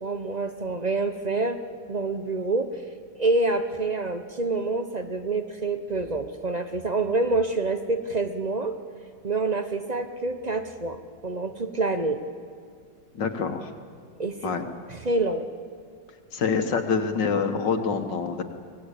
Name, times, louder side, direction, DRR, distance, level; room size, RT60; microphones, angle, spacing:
voice 1, 0.0-1.6 1.9-2.7 3.2-8.7 9.2-11.0 11.2-12.2 14.2-14.5 14.9-15.5, right 3 dB, 35° right, 8 dB, 0.7 m, -27 dB
voice 2, 13.1-13.7 14.4-14.6 16.3-18.4, left 5 dB, 70° left, 6 dB, 2.2 m, -26 dB
24.0 x 19.0 x 8.4 m, 2.2 s
omnidirectional pair, 2.0 m